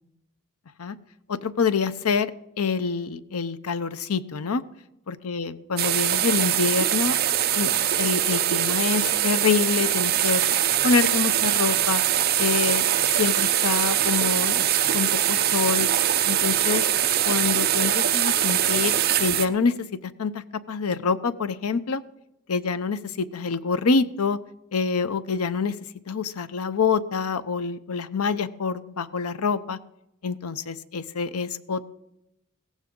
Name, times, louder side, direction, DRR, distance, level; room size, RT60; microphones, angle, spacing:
voice 1, 1.3-4.6 5.1-7.1 7.5-10.4 10.8-12.0 12.4-12.9 13.1-15.9 16.3-16.9 17.2-22.0 22.5-24.4 24.7-25.8 26.1-29.8 30.2-31.8, left 5 dB, 85° left, 14 dB, 0.7 m, -26 dB
sound 1, 5.8-19.5, right 11 dB, 45° right, 0.7 m, -22 dB
16.5 x 14.5 x 3.8 m, 0.89 s
head